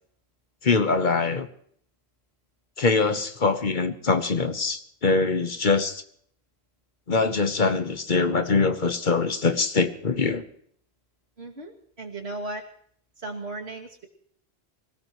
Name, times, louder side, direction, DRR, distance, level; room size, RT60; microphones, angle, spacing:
voice 1, 0.6-1.5 2.8-6.0 7.1-10.4, left 4 dB, 50° left, 9 dB, 1.2 m, -23 dB
voice 2, 11.4-12.6 13.2-14.1, right 2 dB, 75° right, 1 dB, 2.7 m, -36 dB
25.0 x 18.0 x 3.1 m, 0.63 s
omnidirectional pair, 1.1 m